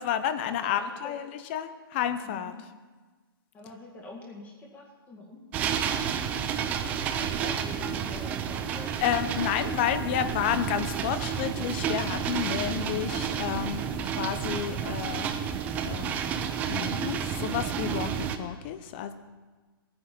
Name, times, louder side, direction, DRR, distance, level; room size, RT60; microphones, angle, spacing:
voice 1, 0.0-2.5 9.0-15.3 15.8-19.1, left 9 dB, 30° left, 11 dB, 0.7 m, -31 dB
voice 2, 0.6-1.2 2.2-2.5 3.5-6.4 6.9-8.9, left 3 dB, 10° left, -1 dB, 1.9 m, -45 dB
sound 1, 5.5-18.4, right 8 dB, 10° right, 0.5 m, -31 dB
16.0 x 9.7 x 6.0 m, 1.4 s
hypercardioid pair, 170°, 13 cm